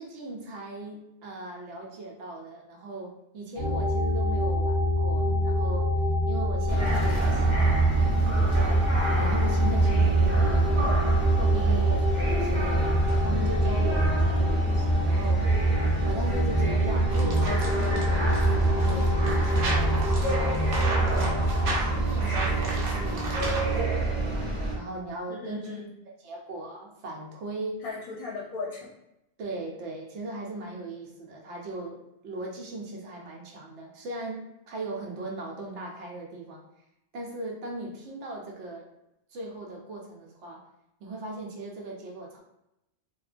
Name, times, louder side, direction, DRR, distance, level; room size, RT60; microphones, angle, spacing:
voice 1, 0.0-5.9 6.3-8.8 9.2-12.9 13.2-15.5 16.0-19.2 19.7-24.5 24.7-25.8 26.0-27.8 29.4-36.6 37.1-38.9 39.3-40.6 41.0-42.4, right 2 dB, 85° right, -1 dB, 0.9 m, -39 dB
sound 1, 3.6-21.8, left 1 dB, 30° left, 0.7 m, -26 dB
sound 2, 6.7-24.8, right 3 dB, 30° right, 0.8 m, -26 dB
voice 2, 13.3-13.8 25.3-25.9 27.8-28.9, left 3 dB, 65° left, -3 dB, 0.7 m, -37 dB
sound 3, 17.1-23.8, right 2 dB, 55° right, 0.7 m, -34 dB
2.9 x 2.2 x 2.4 m, 0.86 s
omnidirectional pair, 1.2 m